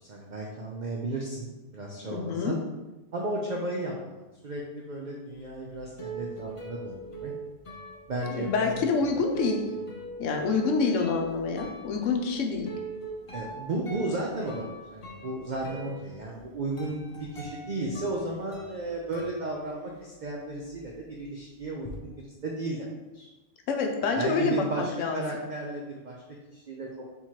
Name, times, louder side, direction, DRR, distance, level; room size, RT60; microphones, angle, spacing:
voice 1, 0.0-2.6 3.1-7.3 8.1-8.9 13.3-17.0 17.3-22.9 23.1-23.3 24.2-26.2 26.5-26.9, right 2 dB, 50° right, -2 dB, 0.6 m, -34 dB
voice 2, 2.1-2.6 8.3-9.7 10.2-12.7 23.7-25.4, left 4 dB, 80° left, 3 dB, 1.0 m, -27 dB
sound 1, 5.4-20.2 20.5-21.9, right 3 dB, 35° left, 0.6 m, -42 dB
4.5 x 3.6 x 2.9 m, 1.1 s
omnidirectional pair, 1.3 m